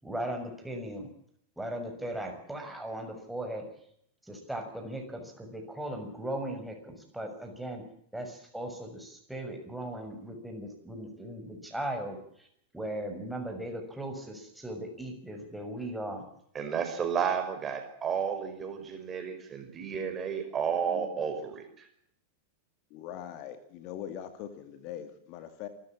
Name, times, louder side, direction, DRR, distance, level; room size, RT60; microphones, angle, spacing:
voice 1, 0.0-1.1 1.6-3.6 4.3-7.8 8.1-12.5 12.7-16.2, right 1 dB, 5° right, 3 dB, 6.6 m, -38 dB
voice 2, 16.5-21.7, right 7 dB, 25° right, 6 dB, 5.3 m, -32 dB
voice 3, 20.7-21.2 22.9-25.7, left 10 dB, 45° left, 10 dB, 2.2 m, -42 dB
27.5 x 14.0 x 7.6 m, 0.70 s
figure-of-eight pair, 90°, 0 cm